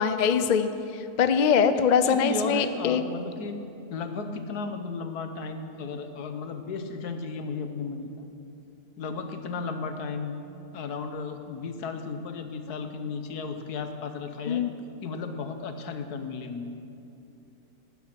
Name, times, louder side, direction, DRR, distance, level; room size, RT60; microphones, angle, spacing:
voice 1, 0.0-3.0 14.5-14.7, left 6 dB, 50° left, 10 dB, 0.5 m, -23 dB
voice 2, 1.7-3.6 3.9-8.3 9.0-10.4 10.7-14.6 15.0-16.7, left 4 dB, 85° left, 7 dB, 1.5 m, -34 dB
18.0 x 9.9 x 5.9 m, 2.7 s
omnidirectional pair, 1.6 m